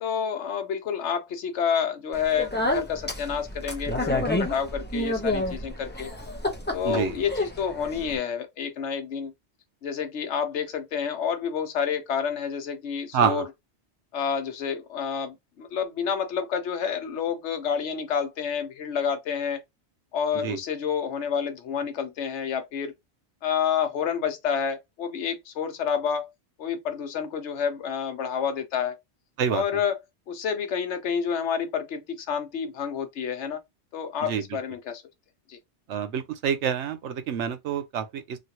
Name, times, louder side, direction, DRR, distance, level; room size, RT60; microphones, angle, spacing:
voice 1, 0.0-6.1 6.7-9.3 9.8-13.4 14.1-19.6 20.1-22.9 23.4-26.3 26.6-29.0 29.5-30.0 30.3-33.6 33.9-35.0 35.5-35.6, left 7 dB, 80° left, 1.0 m, -29 dB
Speech, 2.1-8.2, left 1 dB, 15° left, 0.4 m, -30 dB
voice 2, 6.8-7.1 13.1-13.4 20.4-20.6 29.4-29.6 34.2-34.4 35.9-38.4, right 7 dB, 90° right, 0.9 m, -27 dB
3.1 x 2.4 x 2.8 m
omnidirectional pair, 1.2 m